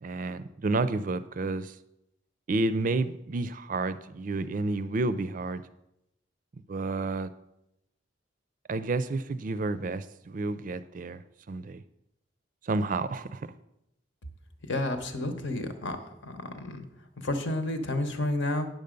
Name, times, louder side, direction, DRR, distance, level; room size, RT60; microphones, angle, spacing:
voice 1, 0.0-1.7 2.5-5.6 6.7-7.3 8.7-11.2 11.5-11.8 12.6-13.5, right 3 dB, 45° right, 13 dB, 0.4 m, -30 dB
voice 2, 14.7-16.0 16.2-16.8 17.2-18.7, left 1 dB, 75° left, 7 dB, 1.1 m, -30 dB
9.1 x 6.7 x 5.2 m, 0.84 s
head